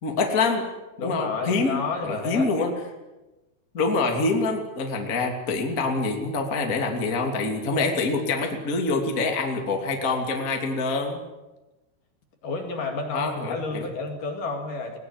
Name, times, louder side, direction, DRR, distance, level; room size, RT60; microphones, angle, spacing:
voice 1, 0.0-0.6 1.0-2.7 3.7-11.2 13.1-13.9, left 3 dB, 25° left, 2 dB, 2.3 m, -25 dB
voice 2, 1.0-2.5 12.4-15.0, left 4 dB, 50° left, 3 dB, 3.3 m, -30 dB
21.0 x 18.5 x 9.9 m, 1.1 s
omnidirectional pair, 5.6 m